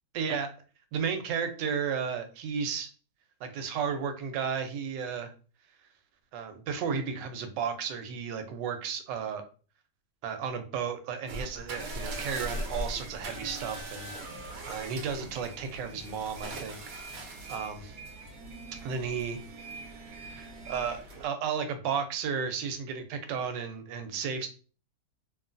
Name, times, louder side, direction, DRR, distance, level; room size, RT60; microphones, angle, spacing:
voice 1, 0.1-0.5 0.9-2.9 3.4-5.3 6.3-9.4 10.2-14.1 14.7-16.8 17.5-18.0 18.8-19.4 19.9-24.5, right 6 dB, 90° right, 7 dB, 1.3 m, -33 dB
sound 1, 11.3-21.3, right 1 dB, 65° right, 1.0 m, -40 dB
3.0 x 2.6 x 2.5 m, 0.38 s
omnidirectional pair, 1.9 m